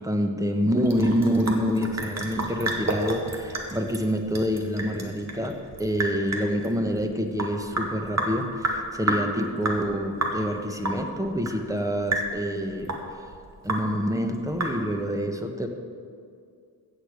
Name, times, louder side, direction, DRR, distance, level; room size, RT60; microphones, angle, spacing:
voice 1, 0.0-12.9 13.6-15.7, equal, 10° right, 5 dB, 1.2 m, -27 dB
Sink (filling or washing) / Drip, 0.7-15.1, right 2 dB, 45° right, 1.9 m, -31 dB
15.0 x 5.2 x 8.3 m, 2.3 s
wide cardioid pair, 90°, 38 cm